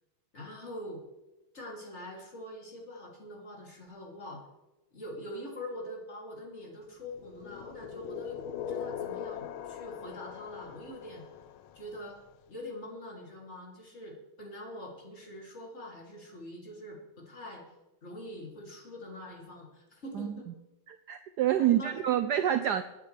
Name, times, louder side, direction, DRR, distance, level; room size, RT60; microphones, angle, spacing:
voice 1, 0.3-1.0 1.5-4.4 4.9-8.4 8.7-11.2 11.7-12.2 12.5-17.6 18.0-20.5 21.6-22.2, left 1 dB, 30° left, -2 dB, 3.1 m, -44 dB
sound 1, 7.2-12.1, left 9 dB, 75° left, 1.4 m, -41 dB
voice 2, 20.9-22.8, right 11 dB, 90° right, 10 dB, 0.9 m, -27 dB
25.0 x 9.3 x 3.3 m, 1.0 s
omnidirectional pair, 2.4 m